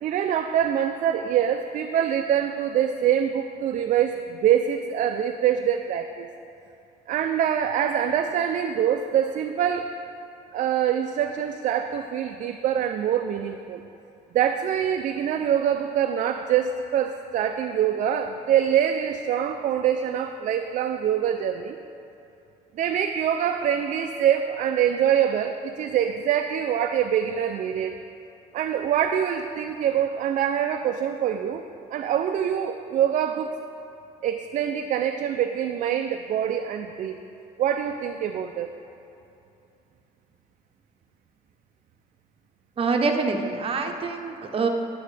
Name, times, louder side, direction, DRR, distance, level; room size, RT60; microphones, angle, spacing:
voice 1, 0.0-6.3 7.1-10.0 10.5-13.8 14.3-21.8 22.8-28.0 28.5-31.6 31.9-33.5 34.2-37.2 37.6-38.7, right 9 dB, 50° right, 6 dB, 0.4 m, -24 dB
voice 2, 42.8-44.7, right 4 dB, 35° right, 3 dB, 0.8 m, -25 dB
9.3 x 8.8 x 3.3 m, 2.7 s
cardioid pair, 110°, 17 cm